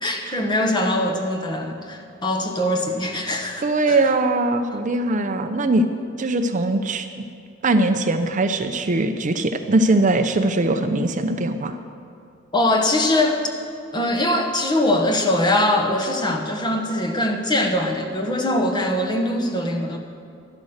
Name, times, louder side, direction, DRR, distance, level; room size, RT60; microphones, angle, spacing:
voice 1, 0.0-4.0 12.5-13.4 13.9-20.0, left 1 dB, 25° left, 3 dB, 1.2 m, -22 dB
voice 2, 3.6-5.9 6.2-7.1 7.6-11.7, right 2 dB, 40° right, 8 dB, 0.6 m, -21 dB
12.5 x 10.5 x 6.5 m, 2.5 s
head